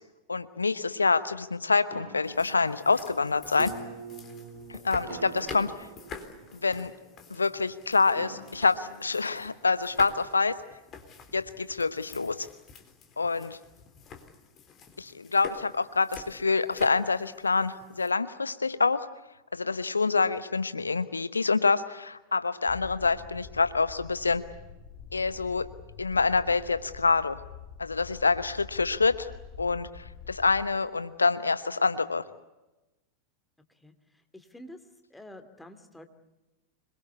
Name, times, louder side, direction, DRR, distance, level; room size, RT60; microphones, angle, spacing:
voice 1, 0.3-3.7 4.7-5.7 6.6-6.9 7.3-10.6 11.3-12.5 13.2-13.6 15.0-19.1 19.5-24.4 25.1-25.7 26.0-27.4 27.8-29.3 29.6-32.2, left 4 dB, 75° left, 14 dB, 1.0 m, -26 dB
sound 1, 1.9-9.4, right 5 dB, 50° right, 2.8 m, -45 dB
sound 2, 2.2-18.1, left 6 dB, 30° left, 3.9 m, -47 dB
sound 3, 22.7-30.7, left 6 dB, 50° left, 3.3 m, -46 dB
voice 2, 33.8-34.8 35.1-36.0, left 1 dB, 5° left, 7 dB, 2.8 m, -49 dB
26.5 x 22.0 x 8.4 m, 1.0 s
figure-of-eight pair, 90°, 0 cm